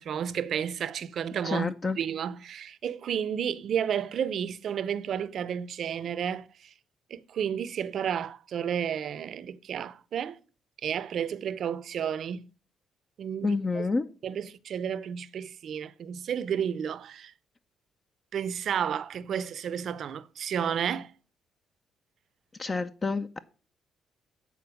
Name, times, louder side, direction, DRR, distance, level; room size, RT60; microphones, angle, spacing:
voice 1, 0.0-1.7 2.0-6.7 7.1-10.4 10.8-12.5 13.2-13.8 14.2-17.3 18.3-21.1, right 8 dB, 65° right, 0.6 m, -32 dB
voice 2, 1.4-2.0 13.4-14.1 22.6-23.4, left 3 dB, 30° left, 0.5 m, -28 dB
8.5 x 4.2 x 6.9 m
cardioid pair, 90°, 0 cm